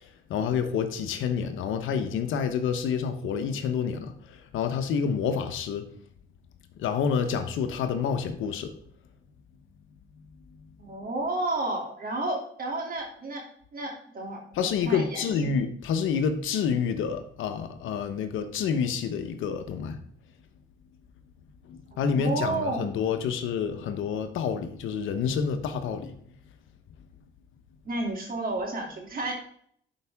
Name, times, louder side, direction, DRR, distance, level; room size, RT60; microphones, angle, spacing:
voice 1, 0.0-5.9 6.8-8.7 14.5-20.0 21.7-26.2, left 6 dB, 85° left, 1.0 m, -28 dB
voice 2, 10.8-13.4 13.7-15.3 21.9-22.9 27.8-29.3, right 2 dB, 45° right, 2.8 m, -31 dB
11.5 x 5.0 x 3.5 m
cardioid pair, 90°, 20 cm